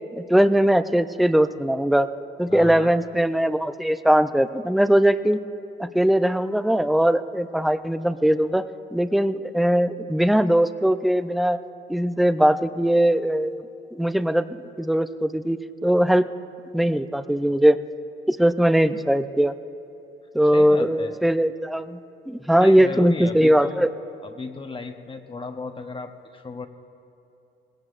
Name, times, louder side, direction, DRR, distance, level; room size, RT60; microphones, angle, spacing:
voice 1, 0.2-2.1 2.4-5.4 5.8-8.6 8.9-11.6 11.9-13.6 13.9-16.3 16.7-17.8 18.3-19.5 20.3-22.0 22.3-23.9, right 1 dB, ahead, 11 dB, 0.4 m, -20 dB
voice 2, 2.5-2.9 20.5-21.1 22.6-23.9 24.2-26.7, left 3 dB, 25° left, 5 dB, 0.8 m, -35 dB
20.0 x 17.0 x 2.5 m, 2.8 s
cardioid pair, 90°, 20 cm